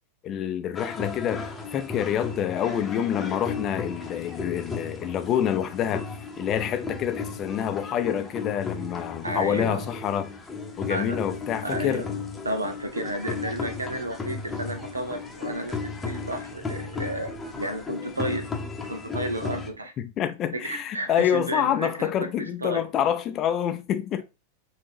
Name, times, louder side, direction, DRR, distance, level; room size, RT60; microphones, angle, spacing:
voice 1, 0.2-1.5 1.7-6.1 6.4-10.3 10.8-12.0 20.0-24.2, left 10 dB, 30° left, 0.5 m, -27 dB
sound 1, 0.7-19.7, left 4 dB, 15° left, 0.9 m, -35 dB
voice 2, 9.2-9.9 10.9-11.2 11.6-12.1 12.4-18.5 18.9-19.9 20.5-22.9, right 1 dB, 80° right, 0.8 m, -32 dB
5.1 x 2.9 x 3.2 m
figure-of-eight pair, 90°, 0 cm